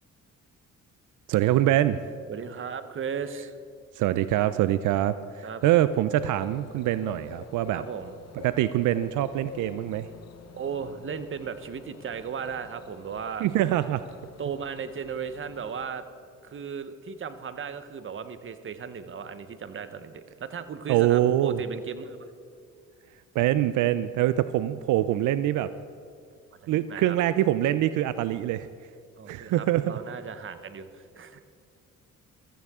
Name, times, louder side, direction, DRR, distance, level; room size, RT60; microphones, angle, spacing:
voice 1, 1.3-2.0 4.0-7.8 8.4-10.1 13.4-14.0 20.9-21.6 23.4-25.7 26.7-28.7 29.3-30.0, right 13 dB, 85° right, 14 dB, 0.5 m, -24 dB
voice 2, 2.3-3.5 5.4-5.6 7.7-8.1 10.5-13.5 14.4-16.0 16.4-22.2 26.6-27.2 29.2-31.5, right 6 dB, 40° right, 11 dB, 1.0 m, -36 dB
Bird / Cricket, 6.1-15.8, left 6 dB, 55° left, 1.0 m, -48 dB
16.0 x 14.5 x 3.6 m, 2.3 s
cardioid pair, 90°, 30 cm